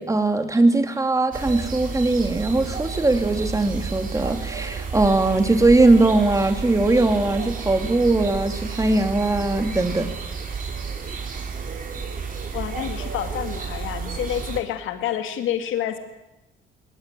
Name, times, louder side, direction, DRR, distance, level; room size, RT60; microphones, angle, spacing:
voice 1, 0.0-10.1, right 2 dB, 15° right, 6 dB, 2.9 m, -20 dB
sound 1, 1.3-14.6, right 5 dB, 45° right, 4.4 m, -31 dB
voice 2, 12.5-16.0, left 10 dB, 80° left, 7 dB, 2.1 m, -28 dB
20.5 x 18.5 x 9.3 m, 0.96 s
cardioid pair, 90°, 20 cm